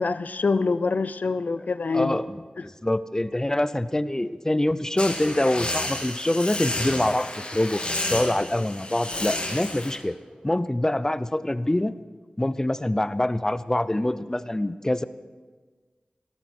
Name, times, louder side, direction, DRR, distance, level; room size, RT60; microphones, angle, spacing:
voice 1, 0.0-2.2, left 4 dB, 70° left, 14 dB, 0.5 m, -25 dB
voice 2, 1.9-7.8 8.1-10.2 10.4-12.0 12.4-15.0, left 1 dB, 20° left, 14 dB, 0.6 m, -25 dB
sound 1, 5.0-10.0, left 1 dB, 40° left, 2.1 m, -31 dB
sound 2, 9.1-11.7, equal, 50° right, 3.7 m, -47 dB
16.5 x 13.5 x 4.3 m, 1.4 s
wide cardioid pair, 50°, 3 cm